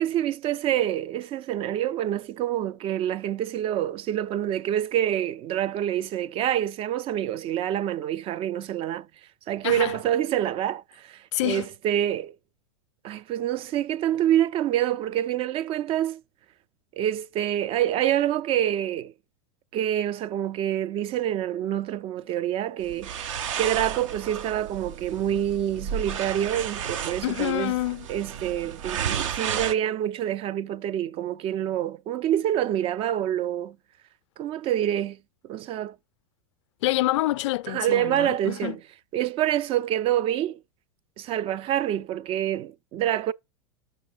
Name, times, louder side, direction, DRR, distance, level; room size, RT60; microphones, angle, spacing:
voice 1, 0.0-9.1 9.5-12.3 13.0-16.2 16.9-19.1 19.7-23.1 23.6-27.7 28.1-33.8 34.4-35.2 35.4-35.9 37.7-38.8 39.1-40.6 41.2-43.3, right 11 dB, 35° right, 0.4 m, -27 dB
voice 2, 9.6-10.0 11.3-11.7 27.2-28.1 36.8-38.8, left 18 dB, 60° left, 0.4 m, -27 dB
sound 1, 22.8-29.7, right 8 dB, 70° right, 0.8 m, -33 dB
6.6 x 5.2 x 5.0 m
hypercardioid pair, 100°, 17 cm